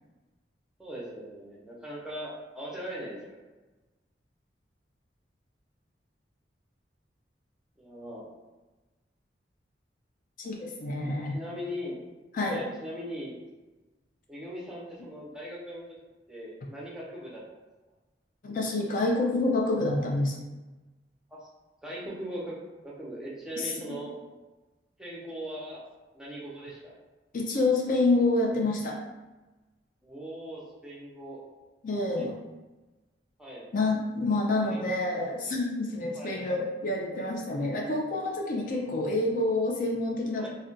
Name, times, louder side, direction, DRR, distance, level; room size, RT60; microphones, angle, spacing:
voice 1, 0.8-3.4 7.8-8.2 11.3-12.0 12.4-13.4 14.3-15.8 16.3-17.4 21.3-21.5 21.8-22.6 22.8-24.2 25.0-25.8 26.1-26.9 30.0-31.4 32.1-32.3 33.4-33.7 34.6-34.8 36.1-36.4 38.8-39.1 40.4-40.5, equal, 5° right, -6 dB, 0.7 m, -40 dB
voice 2, 10.4-11.4 12.3-12.6 18.4-20.4 23.6-23.7 27.3-29.0 31.8-32.4 33.7-40.5, left 2 dB, 50° left, -1 dB, 0.4 m, -27 dB
2.4 x 2.2 x 3.8 m, 1.2 s
head